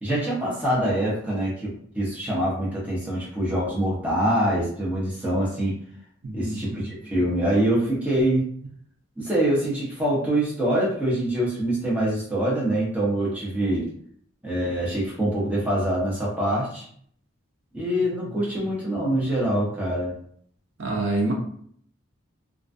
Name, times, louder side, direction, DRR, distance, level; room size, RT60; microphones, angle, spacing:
voice 1, 0.0-5.8 6.3-8.5 9.2-13.9 14.4-16.9 17.7-20.1, right 1 dB, 5° right, -7 dB, 0.7 m, -24 dB
voice 2, 6.2-6.9 18.3-18.7 20.8-21.3, right 2 dB, 70° right, -1 dB, 0.6 m, -28 dB
2.4 x 2.2 x 2.5 m, 0.62 s
head